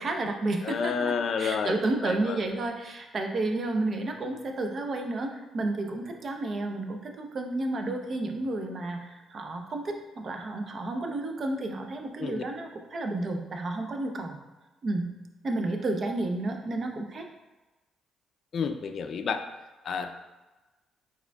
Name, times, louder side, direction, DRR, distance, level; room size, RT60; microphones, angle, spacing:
voice 1, 0.0-14.4 14.8-15.1 15.4-17.3, right 2 dB, 45° right, 4 dB, 0.6 m, -31 dB
voice 2, 0.6-1.8 2.0-2.4 12.2-12.4 18.5-19.4 19.8-20.1, left 6 dB, 55° left, 7 dB, 0.3 m, -30 dB
4.8 x 3.6 x 2.3 m, 1.1 s
cardioid pair, 90°, 0 cm